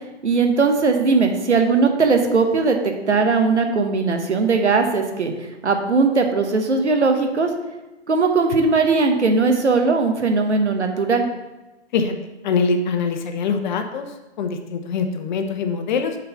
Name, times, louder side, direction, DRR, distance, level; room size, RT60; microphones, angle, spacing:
voice 1, 0.2-5.3 5.6-7.5 8.1-11.2, right 4 dB, 80° right, 5 dB, 1.0 m, -19 dB
voice 2, 12.4-14.1 14.4-16.2, left 5 dB, 40° left, 6 dB, 0.8 m, -23 dB
6.6 x 4.0 x 5.5 m, 1.1 s
figure-of-eight pair, 115°, 34 cm